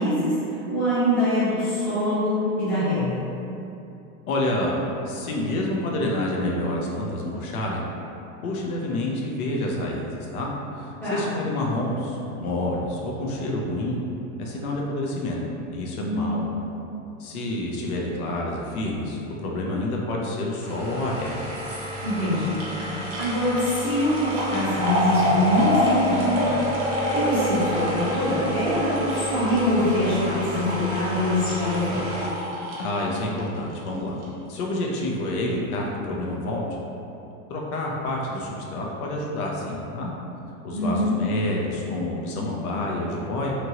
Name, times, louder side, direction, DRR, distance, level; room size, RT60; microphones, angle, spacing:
voice 1, 0.0-3.2 11.0-11.2 16.0-16.4 22.0-22.6 22.9-26.6 27.1-32.1 40.7-41.1, left 1 dB, 5° left, -14 dB, 0.6 m, -24 dB
voice 2, 4.3-7.8 8.4-10.5 10.8-14.0 14.4-15.4 15.7-16.4 17.2-21.4 32.8-34.2 34.5-36.6 37.5-40.1 40.6-43.6, left 1 dB, 75° left, -2 dB, 0.7 m, -28 dB
sound 1, 20.6-33.9 34.2-34.3, equal, 30° right, 0.3 m, -27 dB
2.9 x 2.5 x 2.8 m, 2.8 s
supercardioid pair, 160°, 43 cm